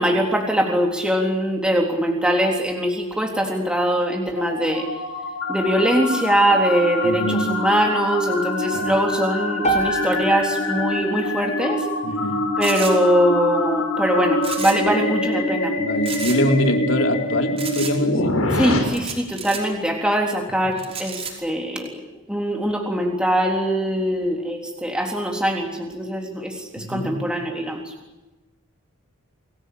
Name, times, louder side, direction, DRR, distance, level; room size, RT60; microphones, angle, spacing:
voice 1, 0.0-4.9 5.5-11.9 12.6-15.8 18.5-22.0 22.3-27.9, right 1 dB, 5° right, 1 dB, 3.7 m, -22 dB
sound 1, 3.7-18.8, left 2 dB, 85° left, 7.1 m, -25 dB
voice 2, 7.0-7.5 8.7-8.9 12.0-12.4 15.8-18.4 26.8-27.1, left 1 dB, 60° left, 4 dB, 4.0 m, -24 dB
sound 2, 9.6-13.8, right 2 dB, 30° left, 3.3 m, -30 dB
sound 3, 12.6-12.9 14.4-14.9 15.2-15.3 16.0-16.4 17.6-17.9 18.9-19.6 20.8-21.3, right 6 dB, 30° right, 5.4 m, -32 dB
29.5 x 20.5 x 8.7 m, 1.1 s
head